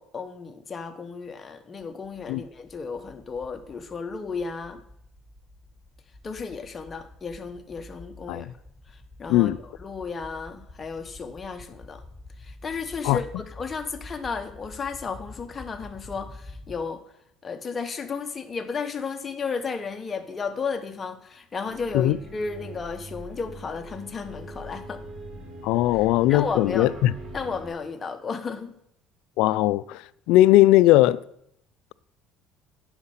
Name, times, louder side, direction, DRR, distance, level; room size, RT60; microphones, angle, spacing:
voice 1, 0.0-4.8 6.2-8.5 8.9-12.0 12.4-17.0 17.4-25.0 25.9-26.0 26.3-26.9 27.3-28.7, left 5 dB, 30° left, 1.1 m, -33 dB
sound 1, 1.8-16.7, left 2 dB, ahead, 3.5 m, -47 dB
sound 2, 21.6-27.7, right 1 dB, 40° right, 2.5 m, -42 dB
voice 2, 25.6-27.1 29.4-30.0 30.3-31.2, left 15 dB, 80° left, 0.3 m, -19 dB
9.7 x 6.5 x 5.8 m
cardioid pair, 100°, 0 cm